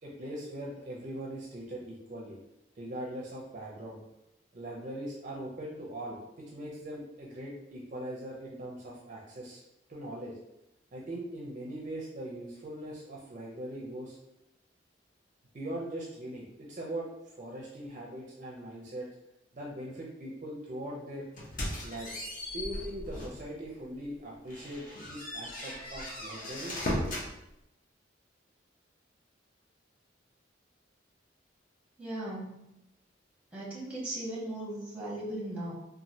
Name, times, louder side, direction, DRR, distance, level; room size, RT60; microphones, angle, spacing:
voice 1, 0.0-2.4 2.8-4.0 4.5-9.6 9.9-10.4 10.9-14.2 15.5-19.1 19.5-21.3 21.8-22.2 22.5-26.9, right 1 dB, 40° right, -3 dB, 0.4 m, -41 dB
sound 1, 21.4-23.5 23.9-24.0 24.5-27.3, left 1 dB, 45° left, 0.6 m, -37 dB
voice 2, 32.0-32.7 33.5-35.7, right 1 dB, 5° right, -5 dB, 0.8 m, -37 dB
3.0 x 2.3 x 2.7 m, 0.87 s
head